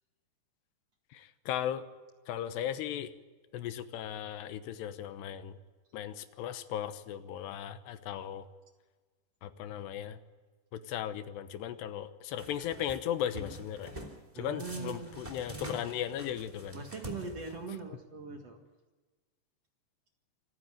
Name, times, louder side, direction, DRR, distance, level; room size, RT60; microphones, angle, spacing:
voice 1, 1.1-1.8 2.3-3.1 3.5-5.6 5.9-8.4 9.4-10.2 10.7-13.9 14.4-16.8, left 10 dB, 85° left, 11 dB, 3.2 m, -37 dB
sound 1, 12.4-13.0 13.3-14.2 14.6-17.8, right 1 dB, 10° right, 2.3 m, -45 dB
voice 2, 14.3-15.2 16.7-18.6, right 4 dB, 50° right, 3 dB, 2.3 m, -41 dB
26.5 x 15.0 x 9.2 m, 1.3 s
omnidirectional pair, 4.8 m